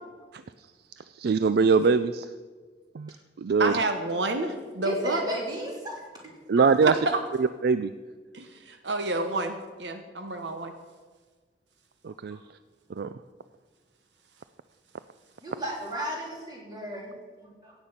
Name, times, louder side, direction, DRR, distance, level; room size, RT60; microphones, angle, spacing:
voice 1, 1.2-2.3 2.9-3.7 6.5-6.9 7.4-7.9 12.0-12.4 13.0-13.1, right 5 dB, 60° right, 12 dB, 0.4 m, -23 dB
voice 2, 3.6-5.2 6.8-7.2 8.3-10.7, right 2 dB, 75° right, 6 dB, 1.1 m, -29 dB
voice 3, 4.8-6.0 6.6-6.7 15.4-17.7, equal, 25° right, -2 dB, 3.6 m, -34 dB
16.0 x 8.7 x 5.7 m, 1.4 s
head